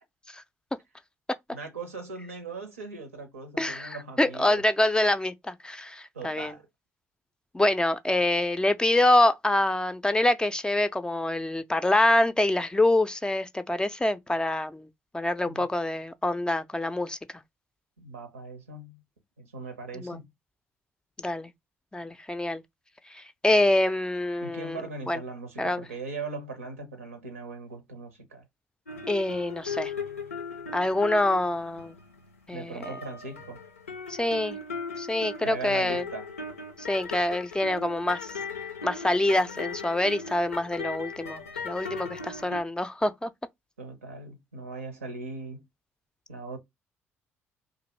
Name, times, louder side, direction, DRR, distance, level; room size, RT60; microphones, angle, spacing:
voice 1, 1.5-4.6 6.1-6.7 15.4-15.7 18.0-19.0 19.4-20.3 24.4-28.5 32.5-33.6 35.4-36.3 43.8-45.6 46.3-46.6, right 3 dB, 90° right, 0.6 m, -39 dB
voice 2, 3.6-6.5 7.5-14.9 15.1-17.2 19.9-20.2 21.2-21.5 21.9-22.6 23.1-25.2 25.6-25.8 29.1-29.9 30.7-31.9 32.5-32.9 34.1-34.6 35.0-36.0 36.9-38.3 38.8-43.3, left 1 dB, 10° left, 0.3 m, -26 dB
sound 1, 28.9-32.5 32.8-42.6, left 4 dB, 90° left, 0.5 m, -38 dB
2.5 x 2.5 x 3.0 m
figure-of-eight pair, 50°, 7 cm